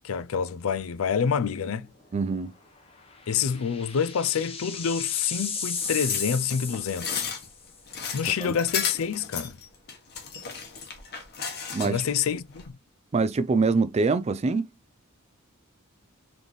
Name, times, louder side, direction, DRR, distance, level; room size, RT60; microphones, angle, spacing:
voice 1, 0.0-1.9 3.3-7.3 8.1-9.6 11.8-12.8, left 7 dB, 70° left, 0.4 m, -27 dB
voice 2, 2.1-2.5 8.4-8.5 11.7-12.0 13.1-14.7, right 4 dB, 30° right, 0.4 m, -24 dB
sound 1, 3.0-7.7, left 6 dB, 25° left, 1.0 m, -35 dB
sound 2, 5.8-12.1 12.5-12.7, left 6 dB, 50° left, 1.2 m, -34 dB
3.9 x 3.6 x 3.1 m
head